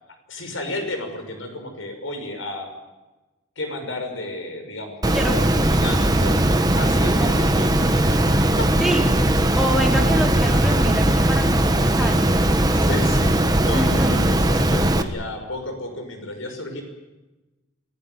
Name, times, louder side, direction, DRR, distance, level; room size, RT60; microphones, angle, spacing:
voice 1, 0.3-2.7 3.6-6.5 6.7-8.7 9.3-9.4 12.8-16.8, left 2 dB, 80° left, 5 dB, 6.1 m, -32 dB
Water, 5.0-15.0, right 1 dB, 20° right, 1.3 m, -19 dB
voice 2, 6.8-7.3 8.8-12.9 13.7-14.2, equal, ahead, 0 dB, 3.9 m, -28 dB
28.0 x 15.5 x 9.6 m, 1.1 s
head